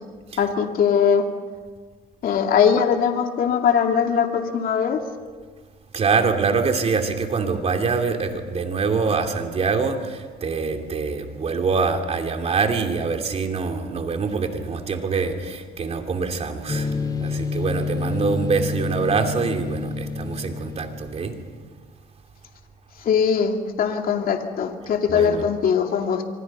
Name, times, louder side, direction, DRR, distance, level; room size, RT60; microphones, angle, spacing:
voice 1, 0.4-1.2 2.2-5.0 23.0-26.2, left 7 dB, 60° left, 2.5 m, -21 dB
voice 2, 5.9-16.9 17.2-21.3 25.1-25.4, right 4 dB, 40° right, 2.9 m, -24 dB
sound 1, 16.7-21.6, left 4 dB, 25° left, 1.9 m, -29 dB
26.0 x 25.5 x 5.6 m
cardioid pair, 110°, 17 cm